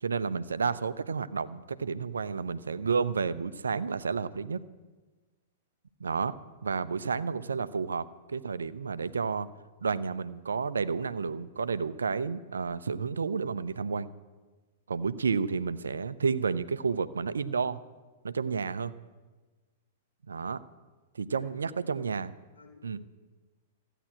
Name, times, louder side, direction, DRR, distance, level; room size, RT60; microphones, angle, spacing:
voice 1, 0.0-4.6 6.0-6.3 6.6-9.5 9.8-14.1 14.9-17.8 18.2-18.9 20.3-20.6 21.1-22.3 22.8-23.0, right 5 dB, 80° right, 14 dB, 0.7 m, -31 dB
voice 2, 21.2-22.1 22.5-23.0, left 2 dB, 80° left, -1 dB, 5.0 m, -55 dB
15.0 x 10.0 x 7.6 m, 1.3 s
hypercardioid pair, 110°, 0 cm